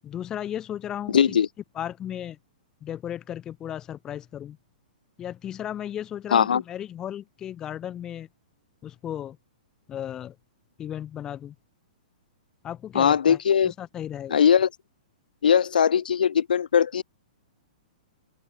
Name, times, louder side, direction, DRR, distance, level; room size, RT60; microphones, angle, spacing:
voice 1, 0.0-1.4 1.7-2.4 2.8-4.6 5.2-8.3 8.8-9.4 9.9-10.4 10.8-11.6 12.6-13.4 13.6-14.4, left 10 dB, 15° left, 5.2 m, -35 dB
voice 2, 1.1-1.5 6.3-6.6 12.9-13.7 14.3-14.7 15.4-17.0, left 8 dB, 90° left, 3.0 m, -20 dB
open air
hypercardioid pair, 175°, 5 cm